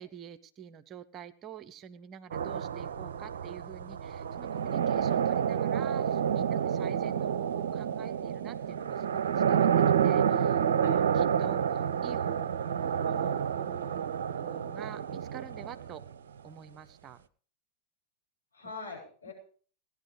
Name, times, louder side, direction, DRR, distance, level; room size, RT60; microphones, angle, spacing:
voice 1, 0.0-9.7 10.0-12.5 13.0-14.1 14.4-16.0 16.4-17.2, right 8 dB, 30° right, 12 dB, 1.0 m, -47 dB
sound 1, 2.3-16.1, right 8 dB, 65° right, 0.7 m, -29 dB
voice 2, 6.5-6.9 10.8-11.1 18.5-19.3, left 3 dB, 80° left, -2 dB, 7.0 m, -44 dB
18.5 x 11.0 x 5.0 m, 0.44 s
figure-of-eight pair, 90°, 0 cm